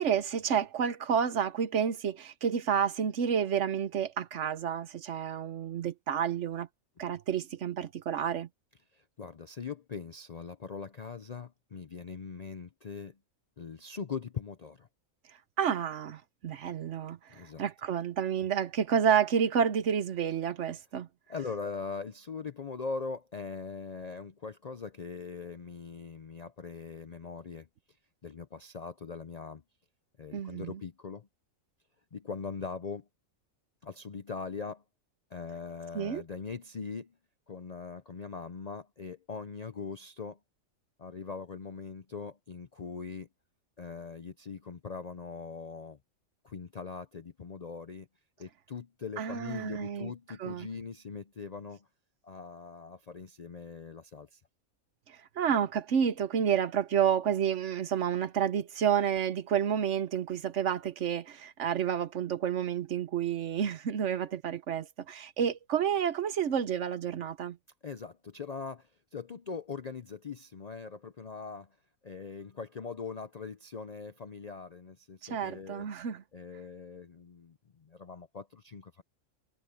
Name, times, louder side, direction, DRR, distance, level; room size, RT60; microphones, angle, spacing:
voice 1, 0.0-6.7 7.0-8.5 15.6-21.1 30.3-30.8 35.9-36.2 49.2-50.1 50.4-50.7 55.4-67.6 75.3-76.2, right 8 dB, 60° right, 1.1 m, -30 dB
voice 2, 8.9-13.2 13.6-14.9 17.3-17.6 21.3-27.7 28.2-29.6 30.2-31.3 32.1-33.1 33.8-34.8 35.3-37.1 37.5-40.4 41.0-43.3 43.8-46.0 46.4-48.1 48.4-51.9 52.2-54.4 67.8-71.8 72.0-75.9 76.3-79.0, left 5 dB, 50° left, 0.5 m, -41 dB
omnidirectional pair, 1.4 m